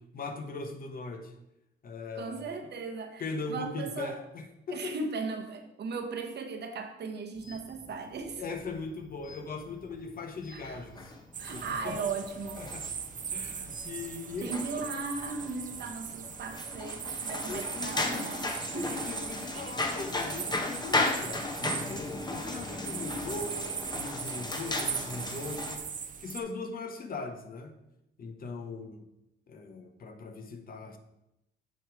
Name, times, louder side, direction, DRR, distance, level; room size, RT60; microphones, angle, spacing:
voice 1, 0.1-1.3 1.8-2.5 3.2-5.0 8.4-11.1 11.4-12.0 12.6-12.9 13.3-14.8 17.5-25.9 26.2-27.8 28.2-29.0 29.5-31.0, left 3 dB, 45° left, 6 dB, 0.9 m, -40 dB
voice 2, 2.1-4.2 4.7-8.6 10.5-10.8 11.4-12.7 14.4-18.5 18.7-19.0, right 4 dB, 60° right, 5 dB, 1.0 m, -37 dB
sound 1, 7.4-25.8, left 2 dB, 20° left, 1.0 m, -37 dB
sound 2, 11.3-26.4, right 7 dB, 40° right, 0.6 m, -40 dB
8.3 x 3.2 x 4.7 m, 0.87 s
cardioid pair, 90°, 20 cm